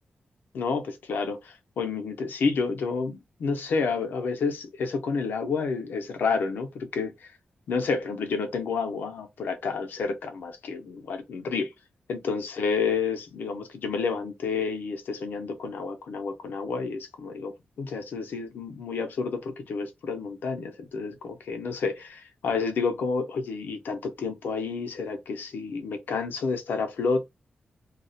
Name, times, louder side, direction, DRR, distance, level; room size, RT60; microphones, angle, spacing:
voice 1, 0.5-7.3 7.7-11.7 12.1-27.3, left 4 dB, 85° left, 0.6 m, -30 dB
2.3 x 2.0 x 2.6 m
wide cardioid pair, 165°, 3 cm